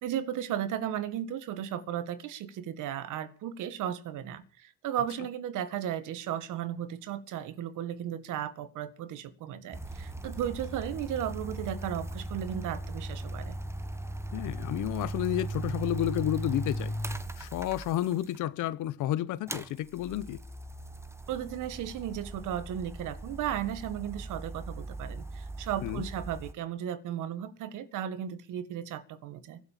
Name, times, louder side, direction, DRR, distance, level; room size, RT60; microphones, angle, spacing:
voice 1, 0.0-13.6 21.3-29.6, right 10 dB, 90° right, 1.9 m, -35 dB
sound 1, 9.7-18.4 19.5-26.5, right 1 dB, 10° right, 1.5 m, -38 dB
voice 2, 14.3-16.9 17.4-20.4 25.8-26.0, left 13 dB, 85° left, 0.9 m, -31 dB
23.5 x 8.1 x 7.5 m
cardioid pair, 90°, 30 cm